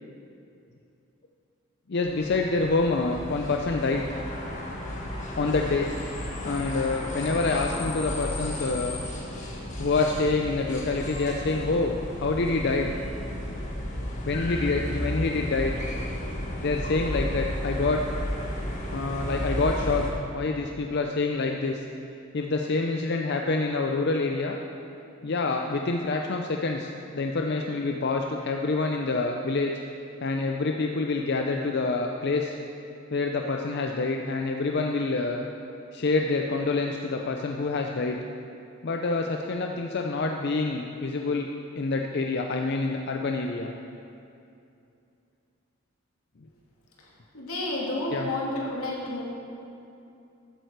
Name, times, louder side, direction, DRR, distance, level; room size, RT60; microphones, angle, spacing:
voice 1, 1.9-4.2 5.4-5.9 6.4-9.0 9.3-9.4 9.8-11.9 12.2-12.9 14.2-15.7 16.6-18.0 18.9-21.8 22.3-24.6 25.2-29.7 30.2-32.6 33.1-35.4 35.9-38.2 38.8-41.5 41.8-43.7 48.1-48.3, left 3 dB, 50° left, 2 dB, 0.5 m, -27 dB
sound 1, 2.0-20.1, left 1 dB, 35° left, 1.5 m, -33 dB
voice 2, 47.3-49.2, left 2 dB, 85° left, -4 dB, 2.7 m, -30 dB
13.0 x 9.1 x 4.7 m, 2.6 s
head